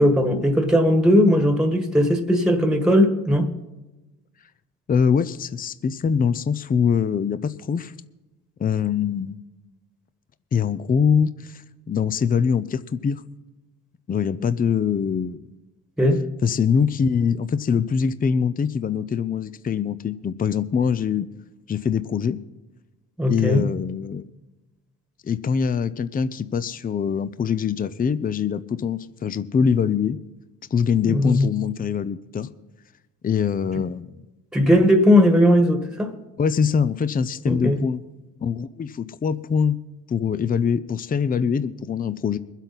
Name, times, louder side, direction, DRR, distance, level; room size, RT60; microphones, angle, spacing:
voice 1, 0.0-3.5 16.0-16.2 23.2-23.7 31.1-31.5 34.5-36.1 37.4-37.8, equal, ahead, 1.5 m, -18 dB
voice 2, 4.9-7.9 8.6-9.4 10.5-11.6 11.9-13.2 14.1-15.4 16.4-21.3 21.7-22.4 23.3-24.3 25.2-30.2 30.7-32.5 33.2-34.2 36.4-38.0 38.4-39.8 40.1-42.4, left 6 dB, 30° left, 0.5 m, -23 dB
22.5 x 8.2 x 4.1 m
cardioid pair, 90°, 30 cm